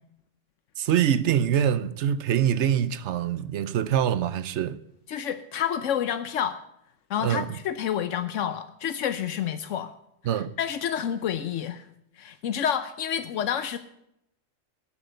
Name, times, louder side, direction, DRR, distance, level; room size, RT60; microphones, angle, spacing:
voice 1, 0.8-4.8 7.2-7.6 10.2-10.5, right 9 dB, 70° right, 0.9 m, -24 dB
voice 2, 5.1-6.6 7.1-9.9 10.3-11.8 12.2-13.8, left 9 dB, 80° left, 1.0 m, -29 dB
12.0 x 8.1 x 7.9 m
omnidirectional pair, 1.3 m